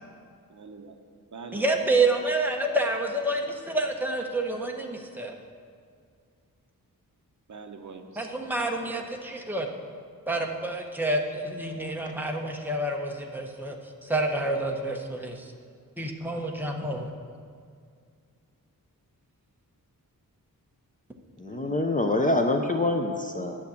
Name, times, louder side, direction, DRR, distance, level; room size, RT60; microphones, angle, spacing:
voice 1, 0.5-1.0 1.3-1.7 7.5-8.3 21.4-22.3, right 4 dB, 55° right, 5 dB, 0.9 m, -44 dB
voice 2, 1.5-5.3 8.2-9.7 10.3-13.8 14.0-15.5 16.0-17.1, right 2 dB, 5° right, 1 dB, 0.9 m, -28 dB
voice 3, 21.4-23.6, left 2 dB, 25° left, 4 dB, 0.6 m, -25 dB
10.5 x 7.2 x 7.0 m, 2.2 s
wide cardioid pair, 180°, 35 cm